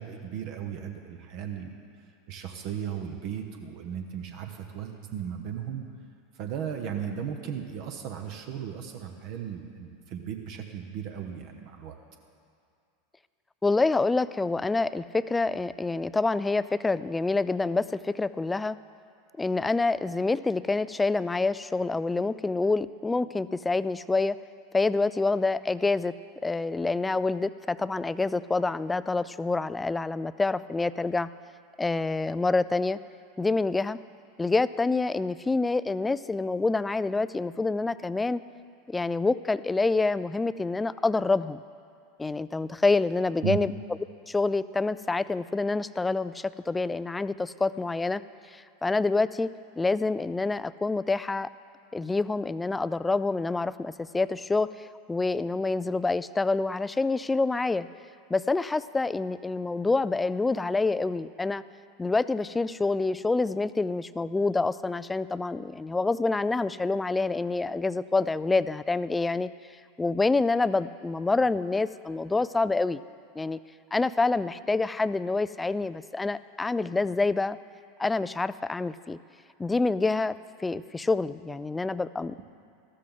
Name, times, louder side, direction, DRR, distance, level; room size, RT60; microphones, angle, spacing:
voice 1, 0.0-1.8 2.3-5.8 6.3-12.0 43.4-43.6, right 8 dB, 50° right, 5 dB, 1.0 m, -36 dB
voice 2, 13.6-18.8 19.4-24.4 24.7-26.1 26.4-31.3 31.8-33.0 33.4-34.0 34.4-38.4 38.9-41.6 42.2-43.7 44.3-48.2 48.5-49.5 49.8-51.5 51.9-57.9 58.3-61.6 62.0-69.5 70.0-73.0 73.4-73.6 73.9-77.6 78.0-79.2 79.6-82.4, left 3 dB, 10° left, 16 dB, 0.3 m, -27 dB
14.0 x 13.0 x 3.9 m, 2.3 s
figure-of-eight pair, 85°, 0 cm